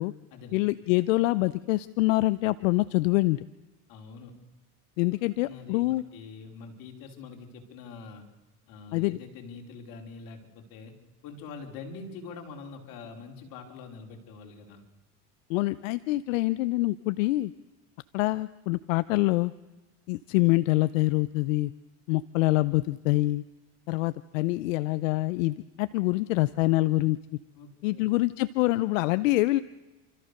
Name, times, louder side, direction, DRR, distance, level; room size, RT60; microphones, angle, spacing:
voice 1, 0.5-3.4 5.0-6.0 8.9-9.2 15.5-17.5 18.1-19.5 20.1-21.7 22.1-23.4 23.9-27.2 27.8-29.6, left 19 dB, 90° left, 16 dB, 0.6 m, -25 dB
voice 2, 3.9-4.3 5.4-8.3 8.7-10.9 11.2-14.8 27.5-28.0, left 4 dB, 60° left, 3 dB, 4.0 m, -44 dB
29.5 x 14.0 x 6.5 m, 1.1 s
supercardioid pair, 105°, 38 cm